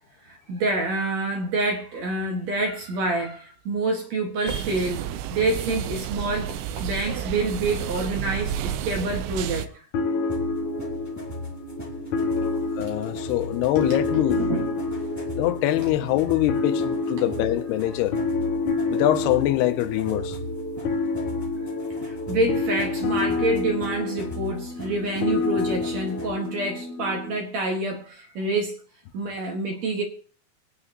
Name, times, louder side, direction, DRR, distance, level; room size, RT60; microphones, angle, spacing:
voice 1, 0.2-9.8 14.3-14.8 22.0-28.8 29.1-30.0, right 2 dB, 50° right, 2.5 m, -27 dB
sound 1, 4.5-9.7, right 10 dB, 80° right, 2.5 m, -31 dB
sound 2, 9.9-27.4, left 3 dB, 65° left, 2.1 m, -28 dB
sound 3, 10.3-26.5, left 1 dB, 5° left, 1.4 m, -38 dB
voice 2, 12.8-14.4 15.4-18.2 18.9-20.4, left 15 dB, 85° left, 2.7 m, -24 dB
24.0 x 9.2 x 2.9 m
omnidirectional pair, 4.7 m